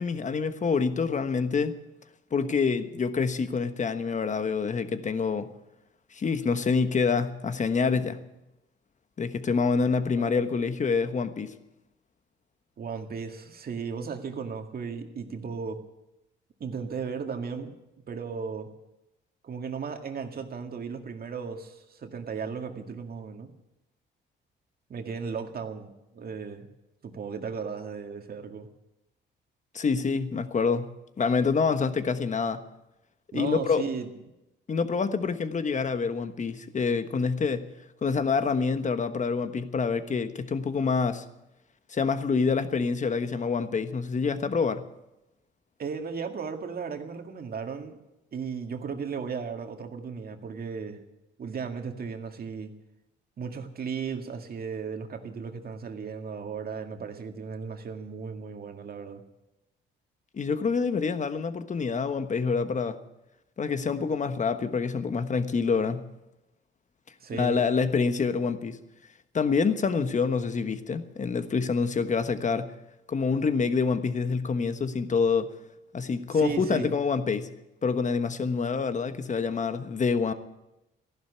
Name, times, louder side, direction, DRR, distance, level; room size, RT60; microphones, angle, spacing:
voice 1, 0.0-1.8 2.3-5.5 6.1-8.2 9.2-11.5 29.7-30.9 31.2-32.6 33.3-33.8 34.7-37.7 38.0-41.3 41.9-44.8 60.3-63.0 63.6-66.1 67.3-68.8 69.3-72.7 73.1-75.5 75.9-77.5 77.8-80.3, left 5 dB, 40° left, 10 dB, 1.3 m, -26 dB
voice 2, 12.8-15.8 16.6-17.8 18.1-18.7 19.4-23.5 24.9-26.7 27.0-28.7 33.3-34.1 45.8-48.0 48.3-51.0 51.4-52.7 53.4-59.2 67.2-67.6 76.3-76.9, right 5 dB, 50° right, 5 dB, 2.1 m, -35 dB
15.0 x 11.5 x 8.3 m, 0.93 s
cardioid pair, 90°, 20 cm